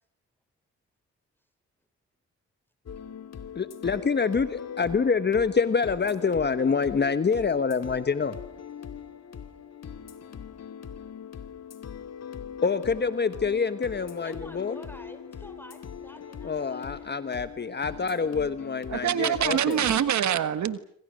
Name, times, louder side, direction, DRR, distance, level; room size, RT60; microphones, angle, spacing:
sound 1, 2.9-20.0, left 7 dB, 60° left, 2.3 m, -41 dB
voice 1, 3.5-8.4 12.6-14.8 16.4-19.8, left 5 dB, 35° left, 12 dB, 1.2 m, -26 dB
voice 2, 14.2-17.2, left 1 dB, 5° left, 9 dB, 5.0 m, -49 dB
voice 3, 18.9-20.8, right 9 dB, 75° right, 13 dB, 1.6 m, -25 dB
26.5 x 26.0 x 6.5 m, 0.66 s
cardioid pair, 85°, 29 cm